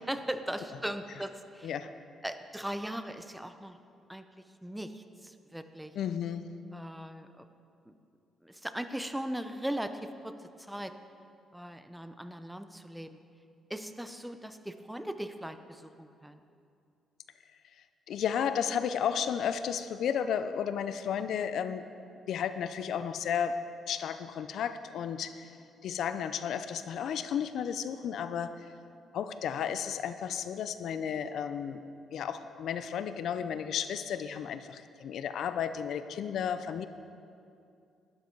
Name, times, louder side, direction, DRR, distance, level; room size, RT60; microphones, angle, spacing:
voice 1, 0.1-1.7 2.2-3.8 4.1-4.2 4.6-5.9 6.7-7.5 7.9-8.0 8.4-10.9 11.5-13.2 13.7-16.4, right 1 dB, 5° right, 9 dB, 0.7 m, -39 dB
voice 2, 5.9-6.5 18.1-21.8 22.3-23.6 23.9-25.6 25.8-28.7 29.1-31.8 32.1-36.9, left 8 dB, 70° left, 11 dB, 0.5 m, -33 dB
12.5 x 11.5 x 4.6 m, 2.5 s
cardioid pair, 90°, 0 cm